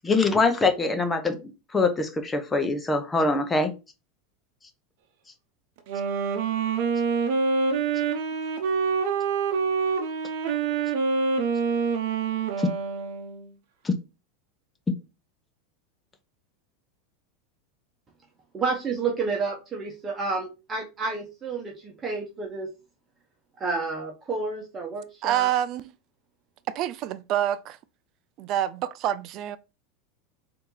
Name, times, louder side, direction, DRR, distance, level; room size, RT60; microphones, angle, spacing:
voice 1, 0.0-1.4 1.7-3.7 12.6-12.7 13.8-13.9, left 3 dB, 15° left, 0.9 m, -23 dB
Wind instrument woodwind instrument, 5.8-13.5, right 5 dB, 65° right, 0.8 m, -26 dB
voice 2, 18.5-22.7 23.6-25.5, right 4 dB, 25° right, 1.2 m, -30 dB
voice 3, 25.2-25.9 26.7-27.8 28.4-29.6, right 11 dB, 50° right, 0.4 m, -27 dB
4.2 x 2.9 x 3.9 m
hypercardioid pair, 105°, 0 cm